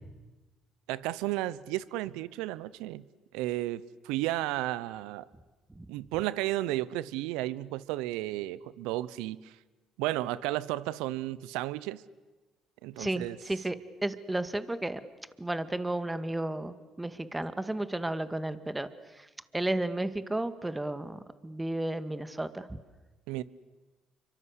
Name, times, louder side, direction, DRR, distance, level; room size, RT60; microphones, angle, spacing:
voice 1, 0.9-3.0 3.3-5.3 5.9-9.5 10.0-12.0 12.8-13.4 23.3-23.4, right 16 dB, 80° right, 19 dB, 0.8 m, -33 dB
voice 2, 13.0-13.8 14.0-15.0 15.4-19.3 19.5-22.8, right 1 dB, 15° right, 12 dB, 2.0 m, -33 dB
29.0 x 24.5 x 8.2 m, 1.2 s
supercardioid pair, 70°, 0 cm